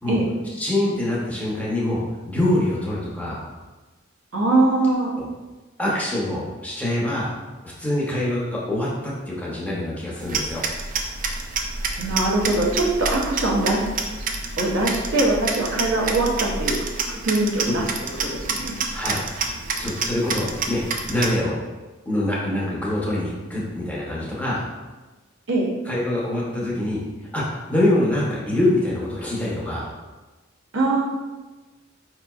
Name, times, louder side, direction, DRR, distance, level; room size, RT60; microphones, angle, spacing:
voice 1, 0.6-2.0 2.3-3.4 5.8-7.3 7.8-10.6 15.7-15.8 18.9-19.2 19.8-20.8 21.1-21.6 22.0-24.7 25.9-27.0 27.3-29.9, left 1 dB, 10° left, -6 dB, 0.8 m, -24 dB
voice 2, 4.3-5.2 12.0-13.9 14.6-16.8 17.2-17.8 18.2-18.8 25.5-25.7 30.7-31.0, right 2 dB, 75° right, -2 dB, 0.8 m, -22 dB
sound 1, 10.2-21.4, right 4 dB, 40° right, 0.3 m, -28 dB
5.0 x 3.0 x 2.3 m, 1.2 s
head